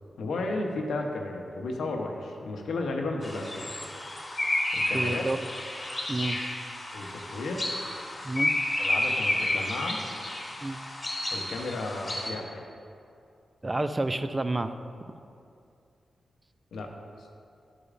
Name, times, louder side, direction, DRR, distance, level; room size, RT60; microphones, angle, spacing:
voice 1, 0.2-3.7 4.7-5.2 6.9-7.6 8.8-10.0 11.3-12.6 16.7-16.9 17.2-17.3, left 2 dB, 85° left, 2 dB, 0.7 m, -33 dB
sound 1, 3.2-12.3, left 1 dB, 30° left, 1.3 m, -31 dB
voice 2, 4.9-5.4 6.1-6.4 8.2-8.5 10.6-10.8 13.6-14.7, right 2 dB, 30° right, 9 dB, 0.3 m, -29 dB
11.0 x 4.9 x 2.5 m, 2.5 s
cardioid pair, 65°, 0 cm